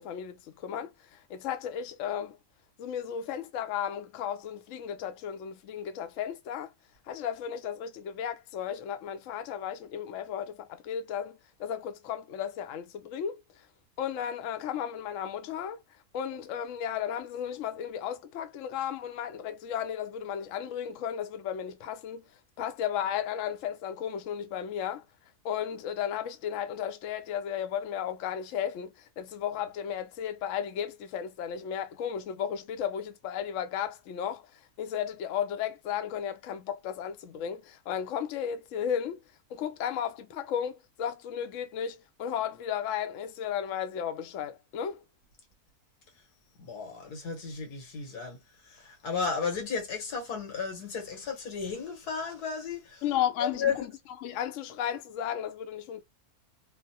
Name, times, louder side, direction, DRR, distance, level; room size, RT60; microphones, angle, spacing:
voice 1, 0.0-2.4 2.8-6.7 7.1-13.7 14.0-15.8 16.1-22.3 22.6-25.0 25.4-39.2 39.5-45.0 53.0-53.9 54.2-56.0, left 9 dB, 65° left, 0.9 m, -34 dB
voice 2, 46.6-48.4 48.6-53.0 53.4-53.9, left 5 dB, 85° left, 1.7 m, -34 dB
3.2 x 2.0 x 2.7 m
omnidirectional pair, 1.6 m